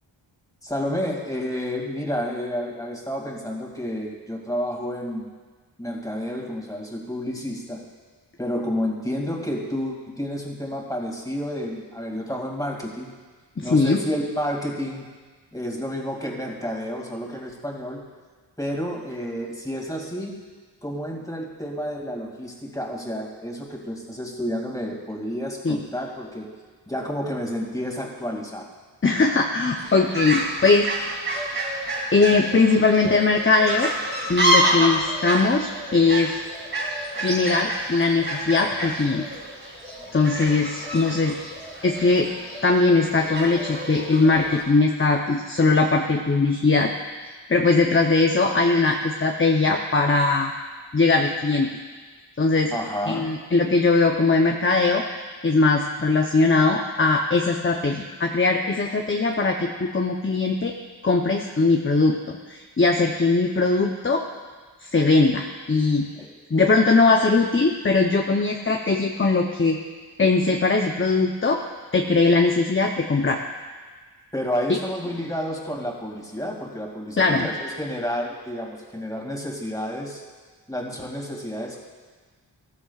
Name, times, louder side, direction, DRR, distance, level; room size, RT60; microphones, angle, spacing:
voice 1, 0.6-5.3 5.8-7.8 8.4-13.2 13.6-15.1 15.5-18.0 18.6-20.4 20.8-26.5 26.9-28.7 52.7-53.3 66.1-66.3 74.3-80.2 80.7-81.8, equal, 10° left, -1 dB, 2.4 m, -30 dB
voice 2, 13.6-14.0 25.6-25.8 29.0-30.9 32.1-33.9 34.3-36.4 37.2-39.2 40.1-41.4 41.8-42.3 42.6-46.9 47.5-50.5 50.9-51.7 52.4-52.7 53.1-55.0 55.4-60.7 61.0-64.2 64.8-66.1 66.5-69.8 70.2-71.6 71.9-73.4 74.7-74.8 77.2-77.5, left 3 dB, 25° left, 2 dB, 0.8 m, -20 dB
Fowl, 29.7-44.6, right 1 dB, 25° right, 2.3 m, -28 dB
14.5 x 13.5 x 2.4 m, 1.4 s
wide cardioid pair, 60°, 46 cm